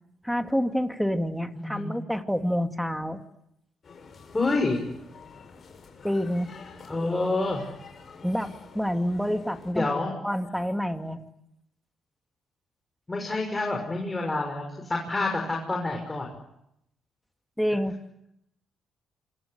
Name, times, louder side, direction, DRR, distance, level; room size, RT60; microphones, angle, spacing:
voice 1, 0.2-3.2 6.0-6.5 8.2-9.9 10.2-11.2 17.6-18.0, equal, ahead, 6 dB, 2.4 m, -28 dB
sound 1, 3.8-9.7, left 5 dB, 45° left, 7.4 m, -48 dB
voice 2, 4.3-4.8 6.9-7.6 9.7-10.1 13.1-16.3, left 2 dB, 20° left, 1 dB, 6.2 m, -27 dB
27.0 x 24.5 x 8.1 m, 0.80 s
cardioid pair, 90°, 0 cm